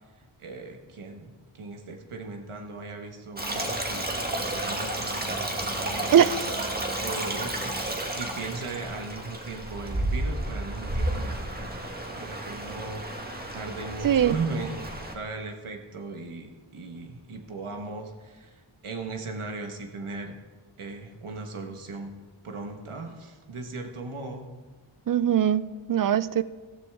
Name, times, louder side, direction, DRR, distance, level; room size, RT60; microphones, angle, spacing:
voice 1, 0.4-1.3 1.6-6.1 6.7-11.8 12.2-14.8 15.1-20.4 20.8-22.1 22.4-24.5, right 3 dB, 85° right, 1.5 m, -38 dB
Stream, 3.4-15.1, right 1 dB, 20° right, 1.6 m, -32 dB
voice 2, 6.1-6.5 14.0-14.3 25.1-26.4, right 9 dB, 45° right, 0.5 m, -21 dB
14.5 x 13.0 x 3.6 m
wide cardioid pair, 65°, 49 cm